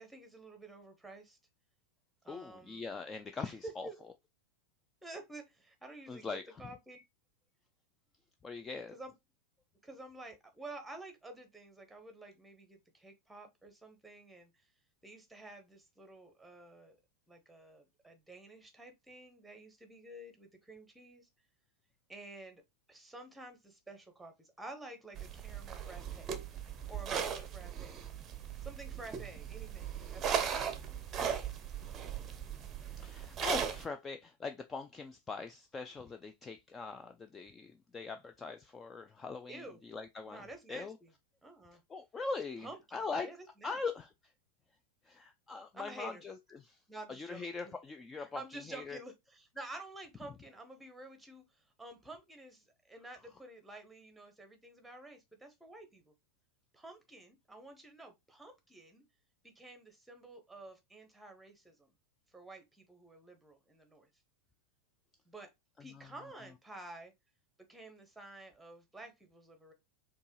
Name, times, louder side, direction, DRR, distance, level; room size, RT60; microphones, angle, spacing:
voice 1, 0.0-1.4 2.2-2.8 3.4-4.1 5.0-7.0 8.9-9.1 9.8-14.5 15.0-17.0 17.3-21.3 22.1-22.6 22.9-26.3 26.9-28.0 28.6-30.7 39.5-39.8 40.3-41.1 41.4-41.8 42.6-43.8 45.7-46.2 46.9-47.7 48.2-56.1 56.7-59.0 59.4-61.9 62.3-64.1 65.3-65.5 65.8-67.1 67.7-69.7, right 2 dB, 5° right, 1.0 m, -50 dB
voice 2, 2.3-3.9 6.1-6.6 8.4-9.0 33.0-41.0 41.9-43.3 43.6-44.1 45.0-46.8 47.1-49.0 65.9-66.1, left 4 dB, 15° left, 0.3 m, -42 dB
sound 1, 25.2-33.8, right 8 dB, 25° right, 0.6 m, -38 dB
4.5 x 2.8 x 3.0 m
figure-of-eight pair, 90°, 0 cm